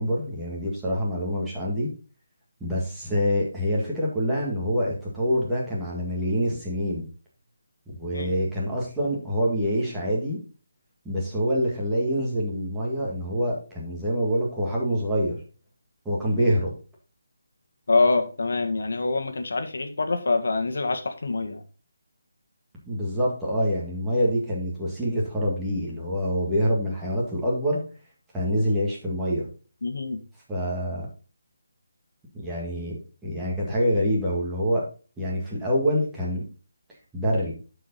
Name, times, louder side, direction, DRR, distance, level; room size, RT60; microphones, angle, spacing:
voice 1, 0.0-1.9 2.6-7.0 8.0-10.4 11.0-15.4 16.0-16.7 22.9-27.8 28.3-29.5 30.5-31.1 32.3-32.9 33.2-34.8 35.2-36.4 37.1-37.5, equal, 5° right, -6 dB, 1.8 m, -26 dB
voice 2, 17.9-21.6 29.8-30.2, left 3 dB, 65° left, 7 dB, 1.5 m, -25 dB
11.0 x 4.8 x 3.9 m, 0.36 s
hypercardioid pair, 175°, 0 cm